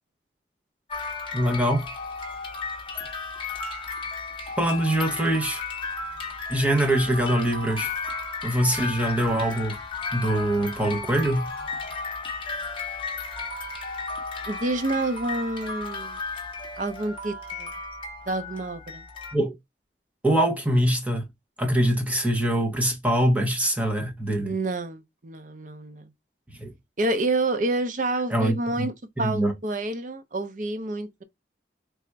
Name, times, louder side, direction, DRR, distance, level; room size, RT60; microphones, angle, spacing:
sound 1, 0.9-19.3, left 4 dB, 30° left, 1.0 m, -34 dB
voice 1, 1.3-1.9 4.6-5.6 6.5-7.9 8.4-9.8 10.1-11.5 19.3-19.5 20.2-21.3 21.6-24.5 26.5-26.7 28.3-28.9 29.2-29.5, right 1 dB, 10° right, 0.9 m, -23 dB
voice 2, 14.5-16.2 16.8-17.7 18.3-19.0 24.4-26.1 27.0-28.9 29.2-31.2, right 2 dB, 45° right, 0.6 m, -28 dB
3.4 x 2.5 x 4.4 m
head